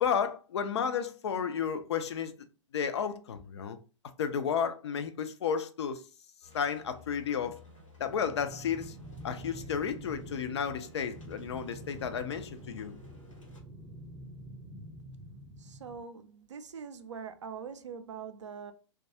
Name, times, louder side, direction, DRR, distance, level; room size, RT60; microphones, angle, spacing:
voice 1, 0.0-2.3 2.7-3.8 4.2-6.0 6.5-7.6 8.0-9.0 9.2-13.0, left 7 dB, 60° left, 0.4 m, -32 dB
sound 1, 6.4-13.6, left 3 dB, 90° left, 1.0 m, -54 dB
sound 2, 8.0-16.0, right 1 dB, 10° right, 0.5 m, -47 dB
voice 2, 15.6-18.7, right 6 dB, 70° right, 0.4 m, -43 dB
2.3 x 2.2 x 2.7 m
figure-of-eight pair, 105°, 16 cm